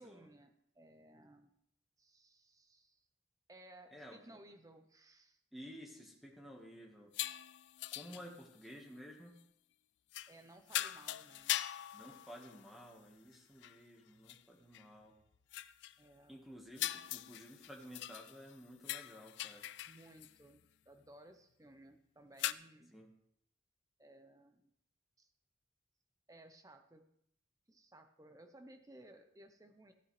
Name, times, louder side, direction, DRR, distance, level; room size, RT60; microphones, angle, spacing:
voice 1, 0.0-1.5 2.0-3.0 3.5-5.4 8.0-8.3 10.3-11.5 16.0-16.4 19.8-22.9 24.0-24.7 25.2-25.3 26.3-27.0 27.7-29.9, right 1 dB, 20° right, 7 dB, 0.7 m, -59 dB
voice 2, 3.9-4.4 5.5-7.1 7.9-9.3 11.9-15.1 16.3-19.7 22.9-23.1, equal, ahead, 0 dB, 1.4 m, -53 dB
sound 1, 7.1-8.7 10.1-10.4 10.7-12.9 13.3-13.4 13.6-13.8 14.3-14.4 14.7-14.8 15.5-16.0 16.8-18.5 18.8-20.3 22.4-22.5, left 14 dB, 70° left, 0.3 m, -41 dB
14.0 x 8.8 x 3.3 m, 0.72 s
head